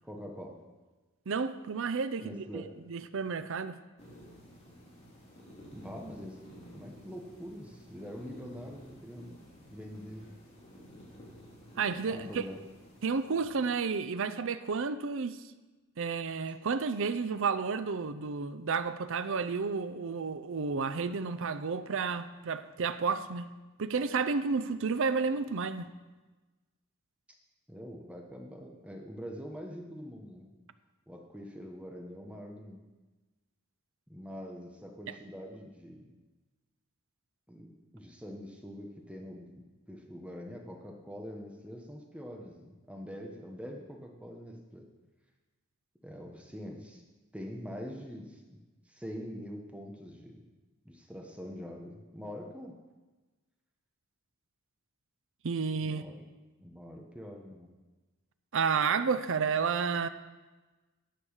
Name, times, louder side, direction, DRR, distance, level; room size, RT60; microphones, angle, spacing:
voice 1, 0.0-0.6 2.2-2.7 5.7-6.4 6.7-9.3 9.6-10.4 12.1-12.6 27.7-30.5 31.1-32.9 34.1-36.1 37.5-44.9 46.0-47.0 47.3-48.4 48.9-50.4 50.8-52.7 55.8-56.2 56.6-57.7, equal, 5° right, 1.1 m, -44 dB
voice 2, 1.3-2.6 2.9-3.8 11.8-12.4 13.0-15.4 16.0-23.5 23.8-25.9 55.4-56.0 58.5-60.1, right 5 dB, 60° right, 0.5 m, -31 dB
sound 1, 4.0-13.5, equal, 30° left, 3.3 m, -52 dB
10.0 x 7.1 x 6.5 m
head